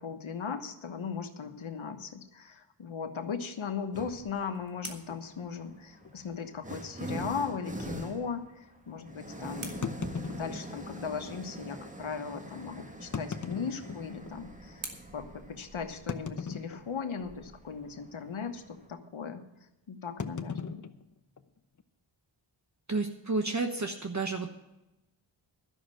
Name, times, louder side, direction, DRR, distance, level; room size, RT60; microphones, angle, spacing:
voice 1, 0.0-9.8 10.4-14.9 15.1-19.4 19.9-20.8, left 6 dB, 85° left, 7 dB, 1.3 m, -38 dB
sound 1, 3.9-4.4 5.4-18.9, right 1 dB, 15° right, 1.6 m, -44 dB
sound 2, 3.9-6.4 8.5-11.0 13.2-16.3, right 4 dB, 85° right, 2.0 m, -51 dB
sound 3, 5.1-5.3 6.0-6.1 6.4-6.5 7.1-7.2 9.8-11.0 11.8-11.9 13.0-14.4 14.9-15.0 16.1-17.2 17.5-17.8 18.1-18.4 20.2-21.8, left 5 dB, 40° left, 0.9 m, -39 dB
voice 2, 22.9-24.5, right 3 dB, 35° right, 5 dB, 1.2 m, -31 dB
12.0 x 6.4 x 8.9 m, 0.93 s
wide cardioid pair, 60°, 46 cm